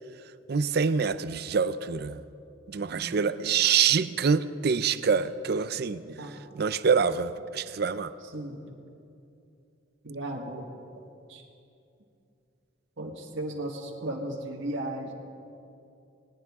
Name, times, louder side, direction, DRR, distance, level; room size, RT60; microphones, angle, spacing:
voice 1, 0.5-2.2 2.7-6.0 6.5-8.1, right 6 dB, 55° right, 14 dB, 0.5 m, -25 dB
voice 2, 6.1-6.4 8.3-8.6 10.0-10.6 11.3-11.4 13.0-15.1, right 1 dB, 75° right, 0 dB, 1.5 m, -35 dB
19.0 x 19.0 x 3.6 m, 2.6 s
head